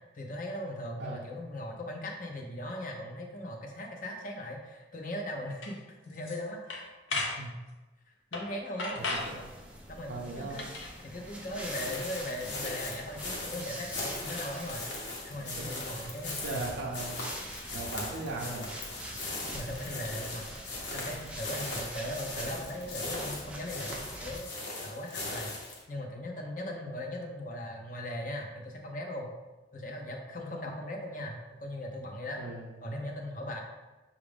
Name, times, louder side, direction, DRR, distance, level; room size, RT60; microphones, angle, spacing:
voice 1, 0.1-7.7 8.1-9.0 9.9-10.6 11.0-16.6 18.2-18.4 19.5-24.5 24.8-25.5 25.9-29.3 29.7-32.4 32.8-33.6, left 1 dB, 45° left, 1 dB, 0.6 m, -39 dB
sound 1, 5.6-5.7 6.1-6.4 6.7-7.4 8.3-8.5 8.8-9.3 10.5-10.9, left 2 dB, 85° left, 0.7 m, -34 dB
voice 2, 8.9-9.5 10.1-10.7 15.6-15.8 16.4-17.3 17.7-18.7 32.4-32.7, right 3 dB, 75° right, -3 dB, 0.5 m, -38 dB
sound 2, 9.0-24.4, equal, 5° right, 0.4 m, -45 dB
sound 3, 11.6-25.8, left 2 dB, 70° left, 1.0 m, -39 dB
6.0 x 2.4 x 3.4 m, 1.2 s
head